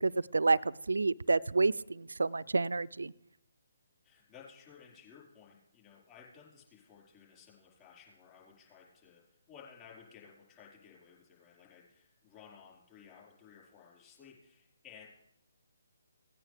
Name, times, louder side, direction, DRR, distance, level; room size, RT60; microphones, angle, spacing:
voice 1, 0.0-3.1, right 3 dB, 80° right, 21 dB, 0.3 m, -29 dB
voice 2, 4.0-15.1, left 7 dB, 20° left, -5 dB, 4.6 m, -56 dB
17.5 x 8.9 x 3.4 m, 0.84 s
figure-of-eight pair, 145°, 0 cm